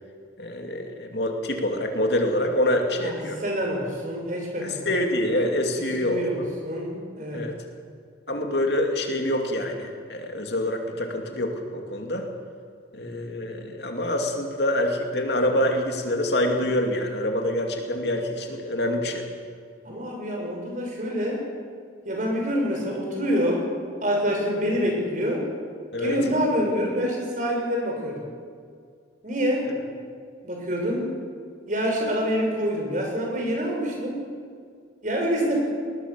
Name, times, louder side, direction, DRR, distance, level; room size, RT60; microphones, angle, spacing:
voice 1, 0.4-3.4 4.6-6.5 7.3-7.5 8.3-12.2 12.9-19.2 25.9-26.2, left 1 dB, 65° left, 3 dB, 2.7 m, -26 dB
voice 2, 3.0-4.9 5.8-7.4 19.8-21.4 22.1-23.7 24.0-25.5 26.0-28.3 29.2-29.7 30.4-31.2 31.7-34.3 35.0-35.6, equal, 45° right, 0 dB, 5.9 m, -26 dB
20.5 x 18.5 x 7.0 m, 2.1 s
head